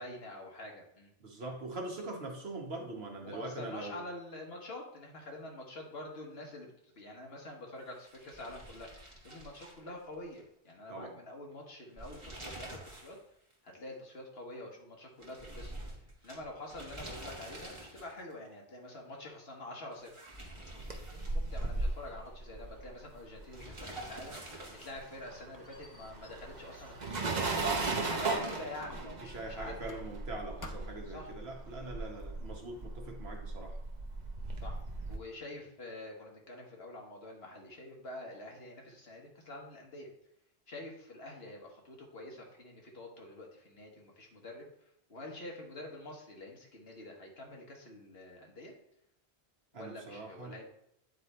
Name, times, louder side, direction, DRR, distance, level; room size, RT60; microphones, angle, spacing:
voice 1, 0.0-1.1 3.2-8.9 9.2-13.2 13.6-15.7 16.2-20.2 21.1-24.4 24.8-27.4 28.1-29.8 31.0-31.3 34.6-34.8 35.1-40.1 40.7-48.7 49.7-50.7, left 1 dB, 60° left, 0 dB, 1.6 m, -46 dB
voice 2, 1.2-4.0 10.9-11.1 29.3-33.8 49.7-50.5, right 2 dB, 60° right, 1 dB, 1.4 m, -42 dB
sound 1, 7.9-10.4 10.7-10.8 11.8-13.2 13.5-13.6 15.2-18.3 19.9-21.9 23.5-25.2, right 1 dB, 25° right, 1.5 m, -48 dB
sound 2, 20.5-24.2 24.4-35.2, right 3 dB, 40° right, 0.9 m, -37 dB
Squeak, 24.7-28.3 28.8-30.3 30.6-31.2, left 2 dB, 30° left, 0.3 m, -54 dB
9.3 x 3.4 x 4.3 m, 0.75 s
omnidirectional pair, 1.2 m